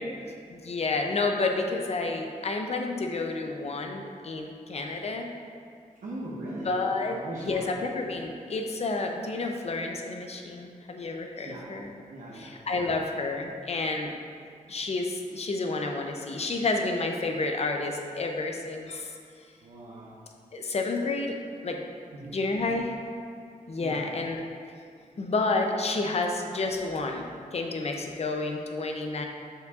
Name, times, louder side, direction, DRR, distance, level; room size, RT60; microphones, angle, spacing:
voice 1, 0.5-5.3 6.7-11.9 12.3-14.1 14.7-19.1 20.5-21.4 21.6-21.8 22.3-22.9 23.7-24.4 25.2-29.3, left 3 dB, 50° left, 3 dB, 0.6 m, -30 dB
voice 2, 6.0-7.8 11.4-11.7 12.1-12.5 19.6-20.1 22.1-22.4 23.8-24.1, right 1 dB, 65° right, -7 dB, 0.8 m, -40 dB
7.0 x 6.6 x 2.4 m, 2.2 s
wide cardioid pair, 180°, 14 cm